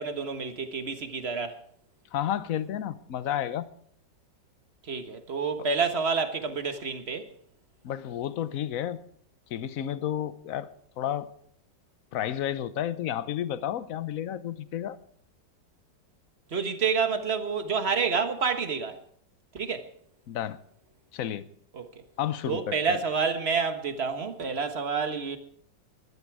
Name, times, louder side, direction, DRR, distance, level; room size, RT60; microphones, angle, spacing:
voice 1, 0.0-1.6 4.8-7.3 16.5-19.0 19.5-19.9 21.7-22.0 22.5-25.4, right 5 dB, 35° right, 1.5 m, -29 dB
voice 2, 2.1-3.7 7.8-9.0 9.5-10.7 11.0-11.3 12.1-15.0 20.3-20.6 21.1-21.4 22.2-23.0, left 10 dB, 55° left, 1.1 m, -31 dB
20.0 x 13.0 x 4.8 m
omnidirectional pair, 2.0 m